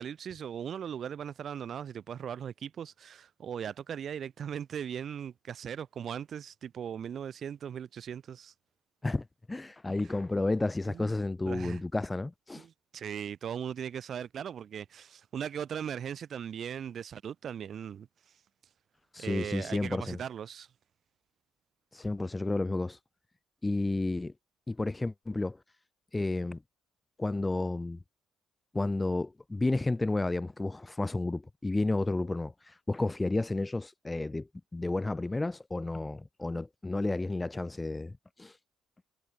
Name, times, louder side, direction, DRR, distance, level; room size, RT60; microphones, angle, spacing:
voice 1, 0.0-8.5 10.9-11.1 11.5-11.8 12.5-18.3 19.2-20.7, right 8 dB, 45° right, 1.5 m, -39 dB
voice 2, 9.0-12.6 19.1-20.2 21.9-23.0 23.6-24.3 24.7-25.6 26.1-26.6 27.2-28.0 28.7-38.1 38.4-38.5, left 2 dB, 15° left, 0.5 m, -31 dB
figure-of-eight pair, 55°, 0 cm